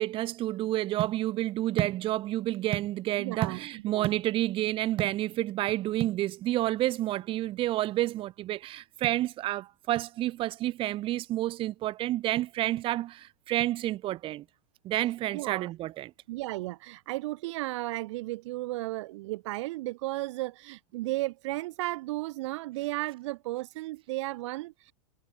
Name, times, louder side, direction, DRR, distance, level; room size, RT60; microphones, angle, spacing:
voice 1, 0.0-14.5 14.8-16.1, right 15 dB, 30° right, 3.5 m, -29 dB
voice 2, 3.2-3.6 3.9-4.1 15.3-15.7 16.3-24.9, right 19 dB, 60° right, 1.6 m, -34 dB
supercardioid pair, 155°, 18 cm